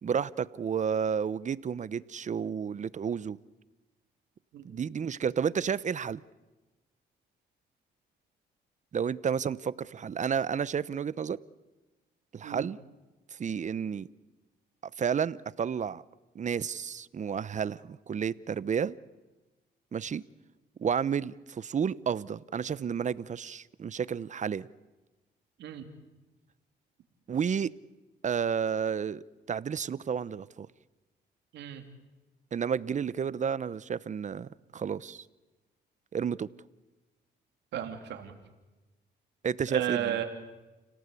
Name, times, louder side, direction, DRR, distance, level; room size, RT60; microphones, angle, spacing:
voice 1, 0.0-3.4 4.6-6.2 8.9-11.4 12.3-12.8 13.3-14.1 15.0-16.0 16.3-19.0 19.9-20.2 20.8-24.7 27.3-27.7 28.2-30.7 32.5-35.2 36.1-36.5 39.4-40.2, right 7 dB, 45° right, 0.8 m, -31 dB
voice 2, 37.7-38.3 39.7-40.2, right 10 dB, 85° right, 3.1 m, -33 dB
30.0 x 17.5 x 8.4 m
cardioid pair, 80°, 18 cm